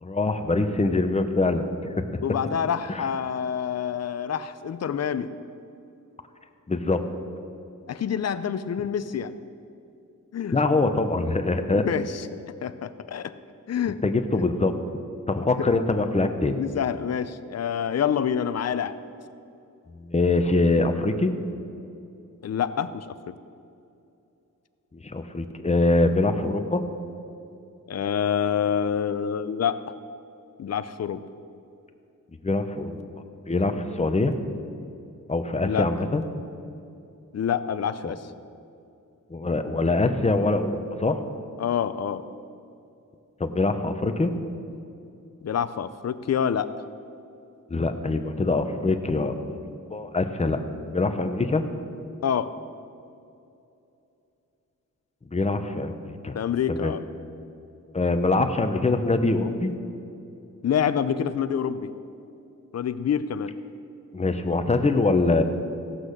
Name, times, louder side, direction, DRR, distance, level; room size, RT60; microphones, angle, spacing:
voice 1, 0.0-1.9 2.9-3.1 6.7-7.0 10.5-11.9 14.0-14.7 15.3-16.6 20.0-21.3 24.9-26.8 32.4-33.0 33.5-34.4 35.3-36.2 39.3-41.2 43.4-44.3 47.7-50.6 50.9-51.6 55.3-56.4 56.7-56.9 57.9-59.7 64.1-65.4, left 2 dB, 20° left, 7 dB, 0.8 m, -24 dB
voice 2, 2.2-5.3 7.9-9.3 10.3-10.6 11.7-12.3 12.6-13.4 13.7-14.0 15.6-15.7 16.6-19.0 22.4-23.3 27.9-29.8 30.6-31.2 35.6-35.9 37.3-38.2 41.6-42.2 45.4-46.7 52.2-52.5 56.3-57.0 60.6-61.9 62.7-63.5, left 8 dB, 55° left, 13 dB, 0.5 m, -27 dB
16.0 x 6.1 x 6.6 m, 2.7 s
wide cardioid pair, 100°, 32 cm